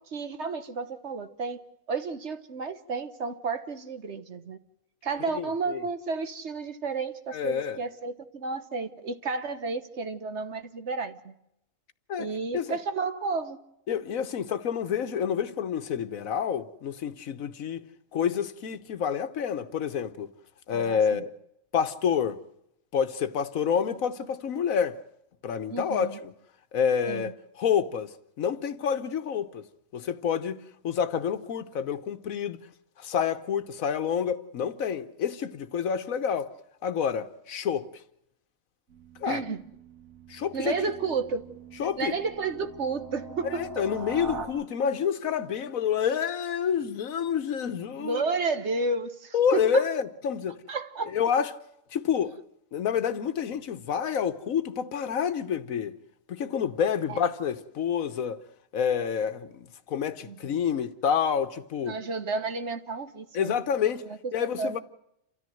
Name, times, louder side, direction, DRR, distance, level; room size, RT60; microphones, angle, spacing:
voice 1, 0.0-1.6 1.9-4.6 5.0-11.3 12.2-13.6 20.7-21.2 25.7-26.2 27.1-27.3 39.2-39.6 40.5-41.4 42.0-43.7 48.0-49.9 50.7-51.1 57.1-57.2 60.2-60.6 61.8-63.6 64.0-64.8, right 4 dB, 60° right, 1.5 m, -32 dB
voice 2, 5.3-5.8 7.3-7.8 12.1-12.3 12.5-12.8 13.9-17.8 18.1-20.3 20.7-21.3 21.7-22.4 22.9-25.0 25.4-26.3 26.7-28.1 28.4-29.6 29.9-32.6 33.0-36.5 36.8-37.9 39.2-39.4 40.3-40.8 41.8-42.1 43.5-48.2 49.3-50.6 51.1-51.5 51.9-52.3 52.7-56.0 56.3-58.4 58.7-62.0 63.3-64.0 64.3-64.8, left 7 dB, 85° left, 1.4 m, -28 dB
sound 1, 38.9-44.5, right 4 dB, 85° right, 2.5 m, -43 dB
29.0 x 13.5 x 7.8 m
omnidirectional pair, 1.4 m